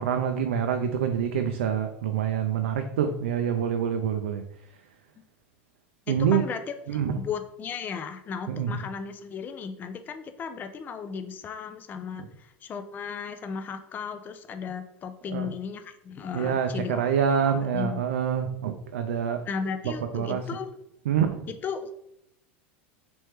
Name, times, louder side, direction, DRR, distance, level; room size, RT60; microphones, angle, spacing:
voice 1, 0.0-4.4 6.1-6.4 6.9-7.1 8.5-8.7 15.3-15.5 16.3-19.4 20.1-20.4 21.1-21.5, right 8 dB, 85° right, 6 dB, 0.4 m, -26 dB
voice 2, 6.1-6.6 6.9-17.1 17.4-18.1 19.5-20.7 21.5-21.9, left 6 dB, 30° left, 8 dB, 0.3 m, -35 dB
3.1 x 3.0 x 3.3 m, 0.79 s
hypercardioid pair, 105°, 7 cm